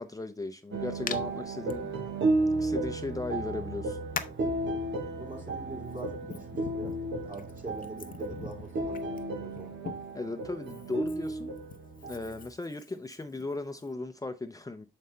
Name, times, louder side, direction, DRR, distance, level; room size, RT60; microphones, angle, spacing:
voice 1, 0.0-1.9 2.6-4.0 10.1-11.5 12.1-14.9, left 3 dB, 20° left, 0.6 m, -37 dB
sound 1, 0.7-12.5, right 2 dB, 75° right, 1.2 m, -33 dB
Hands, 1.1-1.2 1.7-1.8 3.0-3.1 4.1-4.5 5.4-10.2 10.6-13.9, left 6 dB, 50° left, 0.7 m, -42 dB
voice 2, 5.1-6.9 7.2-9.7, right 2 dB, 45° right, 3.1 m, -44 dB
6.5 x 5.6 x 3.3 m
supercardioid pair, 55°, 19 cm